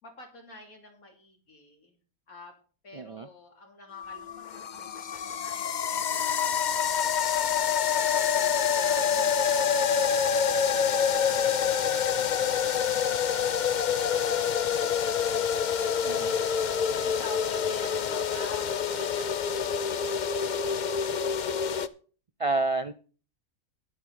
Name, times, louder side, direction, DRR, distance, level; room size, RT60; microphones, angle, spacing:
voice 1, 0.0-2.0 2.3-2.5 2.8-8.2 8.9-9.9 13.7-15.5 16.5-20.3, left 1 dB, 90° left, 3.5 m, -49 dB
voice 2, 2.9-3.3 16.0-16.4 22.4-22.9, right 3 dB, 60° right, 0.3 m, -29 dB
sound 1, 3.9-21.9, left 7 dB, 55° left, 0.5 m, -27 dB
12.0 x 11.0 x 4.0 m
omnidirectional pair, 1.4 m